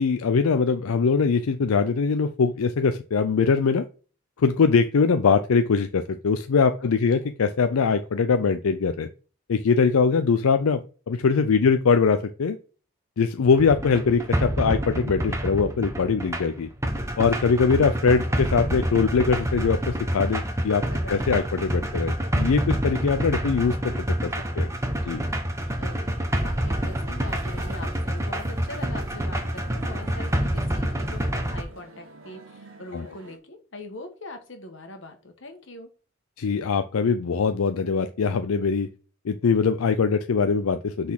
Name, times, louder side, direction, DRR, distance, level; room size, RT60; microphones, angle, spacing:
voice 1, 0.0-3.9 4.4-9.1 9.5-12.6 13.2-16.7 17.2-24.7 25.1-25.2 32.9-33.1 36.4-38.9 39.2-41.1, left 5 dB, 85° left, 9 dB, 0.5 m, -22 dB
voice 2, 6.8-7.3 11.5-11.7 20.9-21.3 25.8-26.0 26.4-35.9, left 2 dB, 60° left, 5 dB, 1.4 m, -42 dB
sound 1, 13.5-31.6, equal, 15° right, 0.9 m, -27 dB
sound 2, 25.7-33.4, right 3 dB, 80° right, 1.5 m, -48 dB
5.9 x 4.1 x 5.8 m, 0.37 s
head